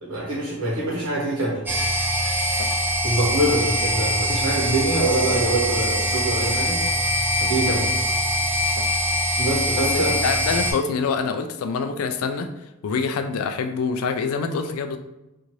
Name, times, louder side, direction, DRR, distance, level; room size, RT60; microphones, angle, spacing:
voice 1, 0.0-1.6 3.0-6.8 7.4-7.9 9.4-10.2, right 1 dB, 75° right, -5 dB, 1.3 m, -24 dB
sound 1, 1.7-10.7, equal, 10° right, 0.4 m, -23 dB
voice 2, 9.8-12.5 12.8-15.0, left 5 dB, 75° left, 8 dB, 0.3 m, -26 dB
2.7 x 2.5 x 3.0 m, 0.95 s
head